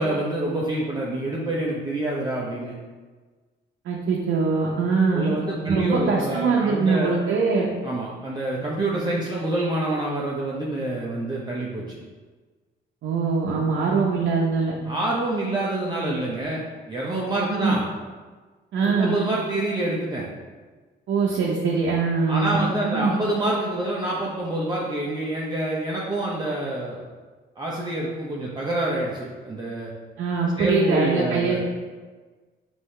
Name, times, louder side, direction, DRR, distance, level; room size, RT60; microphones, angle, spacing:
voice 1, 0.0-2.8 5.1-7.2 7.8-12.0 14.9-17.9 18.8-20.3 22.3-27.0 27.6-29.9 30.6-31.6, right 1 dB, 20° right, -5 dB, 0.7 m, -27 dB
voice 2, 3.8-5.3 5.6-7.7 13.0-14.7 17.5-17.8 18.7-19.2 21.1-23.1 30.2-31.6, right 4 dB, 70° right, -3 dB, 0.7 m, -22 dB
5.4 x 2.7 x 3.2 m, 1.4 s
cardioid pair, 90°, 20 cm